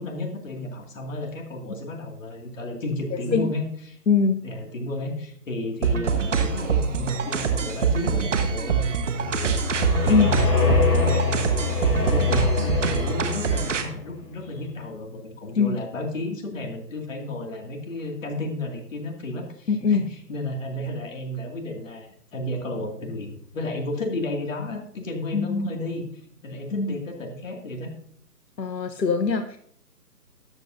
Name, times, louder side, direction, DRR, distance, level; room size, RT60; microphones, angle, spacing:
voice 1, 0.0-4.0 4.4-20.0 20.3-26.0 26.4-27.9, left 1 dB, 50° left, 2 dB, 2.3 m, -33 dB
voice 2, 3.1-3.5 4.1-4.4 10.1-10.3 15.6-15.8 19.7-20.0 25.3-25.7 26.7-26.9 28.6-29.6, left 5 dB, 85° left, 8 dB, 1.0 m, -22 dB
sound 1, 5.8-13.8, right 6 dB, 45° right, 1.3 m, -24 dB
sound 2, 9.2-13.9, left 5 dB, 70° left, 4.6 m, -24 dB
13.0 x 8.2 x 2.6 m, 0.63 s
figure-of-eight pair, 150°, 49 cm